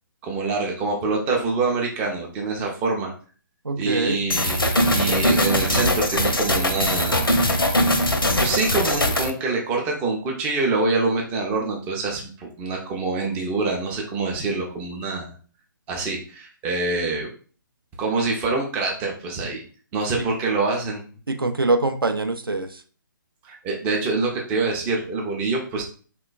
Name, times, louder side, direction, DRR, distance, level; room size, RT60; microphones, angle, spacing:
voice 1, 0.2-3.1 3.8-4.6 4.9-7.4 8.4-15.3 15.9-17.3 18.0-19.6 19.9-21.0 23.4-25.8, right 3 dB, 10° right, 0 dB, 0.3 m, -25 dB
voice 2, 3.6-4.2 20.2-20.3 21.3-22.8, right 2 dB, 85° right, 7 dB, 0.4 m, -24 dB
sound 1, 4.3-9.3, left 1 dB, 85° left, 0.5 m, -21 dB
3.0 x 2.1 x 2.4 m, 0.40 s
figure-of-eight pair, 135°, 12 cm